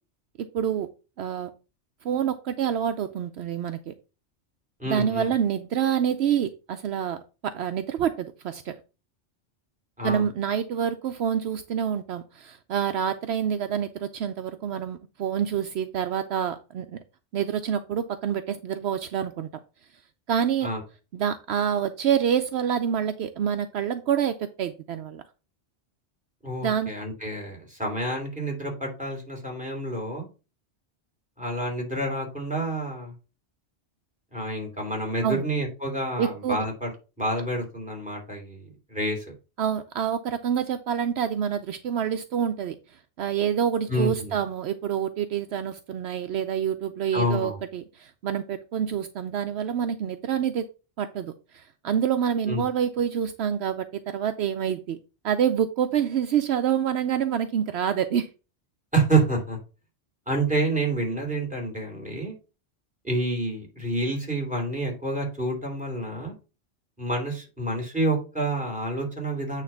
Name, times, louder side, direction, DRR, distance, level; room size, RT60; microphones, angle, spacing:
voice 1, 0.4-0.9 1.2-1.5 2.0-3.9 4.9-8.7 10.0-16.9 17.3-19.5 20.3-20.7 21.1-25.2 26.6-26.9 35.2-35.4 36.2-36.6 39.6-42.8 43.2-50.6 51.0-55.0 55.2-58.3, right 8 dB, 70° right, 0.8 m, -27 dB
voice 2, 4.8-5.3 10.0-10.2 20.6-20.8 26.4-30.2 31.4-33.1 34.3-36.9 37.2-39.2 43.9-44.4 47.1-47.6 52.5-52.6 58.9-59.6 60.3-62.3 63.0-66.3 67.0-69.6, right 2 dB, 5° right, 3.1 m, -28 dB
9.0 x 3.3 x 5.6 m
omnidirectional pair, 1.1 m